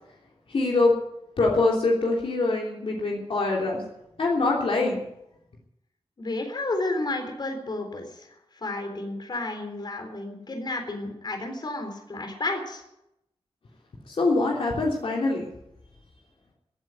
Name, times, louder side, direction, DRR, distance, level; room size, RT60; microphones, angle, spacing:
voice 1, 0.5-0.9 1.4-3.8 4.2-5.0 14.1-15.5, left 3 dB, 60° left, -2 dB, 3.2 m, -24 dB
voice 2, 6.2-8.3 8.5-12.8, left 2 dB, 45° left, 5 dB, 3.8 m, -31 dB
15.5 x 9.1 x 9.6 m, 0.84 s
wide cardioid pair, 115°, 11 cm